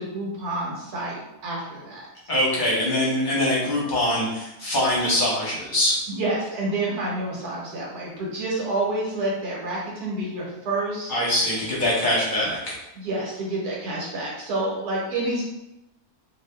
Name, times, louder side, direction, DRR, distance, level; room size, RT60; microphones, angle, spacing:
voice 1, 0.0-2.1 6.1-11.1 13.0-15.4, right 2 dB, 90° right, -4 dB, 1.4 m, -28 dB
voice 2, 2.3-6.0 11.1-12.7, left 1 dB, 40° left, -6 dB, 0.9 m, -23 dB
2.6 x 2.5 x 3.3 m, 0.91 s
omnidirectional pair, 1.6 m